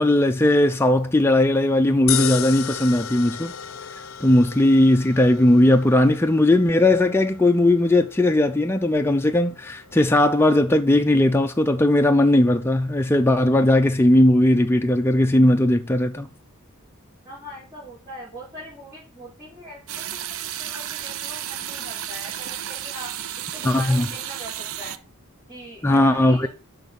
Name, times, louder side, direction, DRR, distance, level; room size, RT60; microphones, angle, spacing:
voice 1, 0.0-3.5 4.2-16.3 23.7-24.0 25.8-26.5, left 1 dB, 10° left, 0.5 m, -18 dB
sound 1, 2.1-14.4, left 10 dB, 65° left, 0.7 m, -36 dB
voice 2, 17.2-25.0 25.5-26.5, equal, 20° right, 4.5 m, -41 dB
sound 2, 19.9-25.0, right 11 dB, 70° right, 0.6 m, -33 dB
6.6 x 5.7 x 6.9 m
head